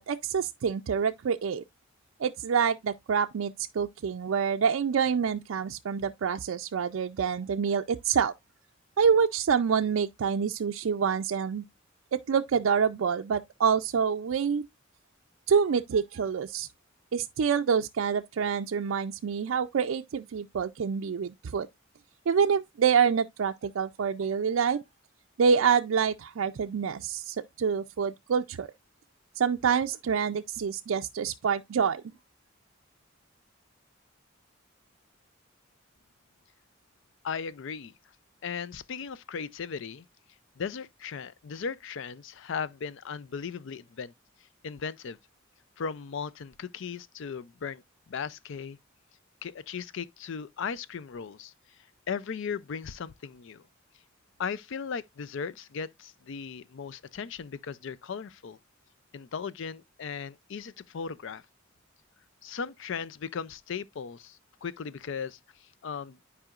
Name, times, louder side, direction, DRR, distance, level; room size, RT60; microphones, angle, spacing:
voice 1, 0.0-1.6 2.2-8.3 9.0-11.6 12.1-14.6 15.5-16.7 17.1-21.7 22.3-24.8 25.4-28.7 29.4-32.0, right 6 dB, 80° right, 0.4 m, -27 dB
voice 2, 37.2-37.9 38.4-40.0 40.6-44.1 44.6-45.2 45.8-47.8 48.1-48.8 49.4-51.5 52.1-53.6 54.4-58.6 59.1-61.4 62.4-65.4 65.8-66.2, left 6 dB, 65° left, 0.4 m, -37 dB
12.0 x 4.8 x 2.4 m
head